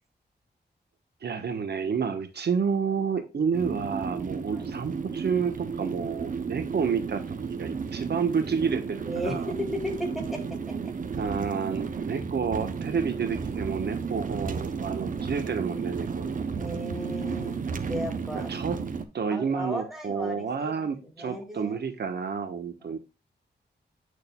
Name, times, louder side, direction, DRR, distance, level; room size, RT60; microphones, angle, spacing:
voice 1, 1.2-7.2 7.5-9.5 11.2-16.4 18.3-18.8 19.1-23.0, right 6 dB, 70° right, 7 dB, 1.2 m, -30 dB
sound 1, 3.5-19.1, right 5 dB, 50° right, 0.8 m, -33 dB
voice 2, 9.0-9.4 9.8-10.4 16.5-18.5 19.3-21.8 22.8-22.9, equal, ahead, 1 dB, 2.3 m, -36 dB
8.7 x 6.5 x 2.3 m, 0.27 s
wide cardioid pair, 155°, 18 cm